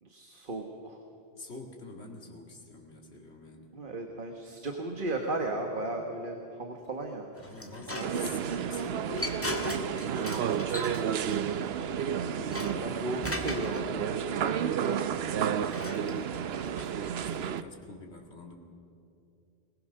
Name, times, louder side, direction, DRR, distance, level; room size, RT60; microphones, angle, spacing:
voice 1, 0.0-1.0 3.7-7.3 7.9-8.4 12.5-15.3, right 2 dB, 55° right, 3 dB, 1.6 m, -36 dB
voice 2, 1.3-3.7 7.4-11.9 12.3-13.0 14.4-14.8 15.2-16.5 17.1-18.5, left 2 dB, 90° left, 1 dB, 2.6 m, -48 dB
sound 1, 7.3-13.8 15.1-17.5, left 2 dB, 15° left, 1.6 m, -40 dB
sound 2, 8.0-17.6, right 8 dB, 75° right, 0.9 m, -31 dB
21.5 x 20.0 x 6.5 m, 2.7 s
omnidirectional pair, 1.1 m